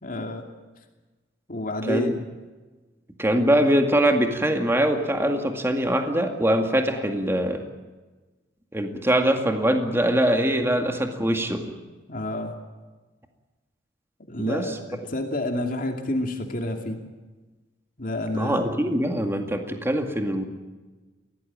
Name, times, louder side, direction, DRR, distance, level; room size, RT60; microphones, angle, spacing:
voice 1, 0.0-0.4 1.5-2.1 12.1-12.5 14.3-17.0 18.0-18.6, left 1 dB, 50° left, 3 dB, 2.6 m, -29 dB
voice 2, 1.8-2.2 3.2-7.6 8.7-11.6 14.4-14.7 18.3-20.4, right 1 dB, 15° right, 4 dB, 2.1 m, -23 dB
23.0 x 17.5 x 8.8 m, 1.2 s
head